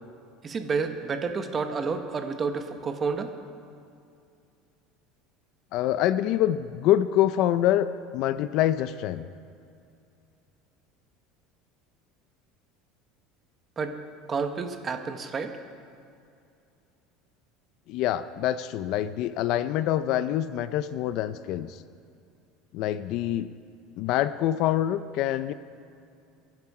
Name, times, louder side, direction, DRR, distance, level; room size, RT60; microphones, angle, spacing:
voice 1, 0.4-3.3 13.8-13.9 14.3-15.5, right 5 dB, 20° right, 7 dB, 1.1 m, -30 dB
voice 2, 5.7-9.3 17.9-21.8 22.7-23.5 24.0-25.5, left 12 dB, 50° left, 14 dB, 0.5 m, -25 dB
22.5 x 11.0 x 4.8 m, 2.5 s
cardioid pair, 160°, 0 cm